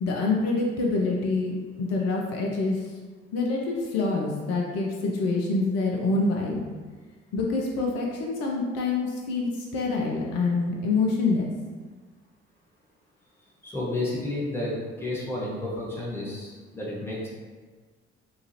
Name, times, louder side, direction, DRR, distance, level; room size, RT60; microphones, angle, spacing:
voice 1, 0.0-2.9 3.3-6.6 7.3-11.5, left 3 dB, 50° left, -1 dB, 0.5 m, -26 dB
voice 2, 13.6-14.7 15.0-17.3, left 2 dB, 5° left, -6 dB, 1.0 m, -31 dB
2.8 x 2.4 x 2.7 m, 1.4 s
figure-of-eight pair, 45°, 33 cm